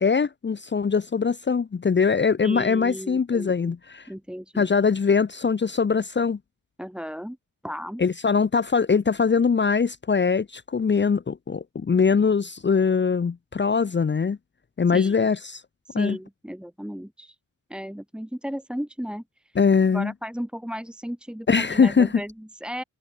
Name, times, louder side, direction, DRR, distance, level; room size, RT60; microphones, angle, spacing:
voice 1, 0.0-4.1 4.5-6.4 8.0-14.4 14.8-15.6 15.9-16.2 19.5-20.1 21.5-22.1, left 5 dB, 35° left, 0.9 m, -22 dB
voice 2, 2.4-3.7 4.1-4.7 6.8-7.4 7.6-8.0 14.9-15.3 15.8-17.4 17.7-19.2 19.9-22.8, equal, 5° right, 2.6 m, -35 dB
cardioid pair, 95°, 34 cm